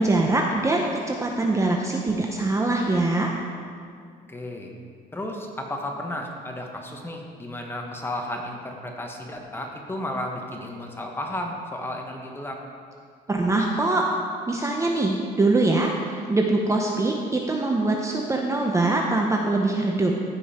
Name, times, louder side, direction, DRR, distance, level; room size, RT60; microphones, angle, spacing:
voice 1, 0.0-3.3 13.3-14.0 14.5-20.1, right 2 dB, 15° right, 1 dB, 0.7 m, -23 dB
voice 2, 4.3-4.7 5.1-12.6, left 1 dB, 15° left, 1 dB, 1.3 m, -33 dB
14.5 x 5.4 x 4.3 m, 2.2 s
cardioid pair, 110°, 17 cm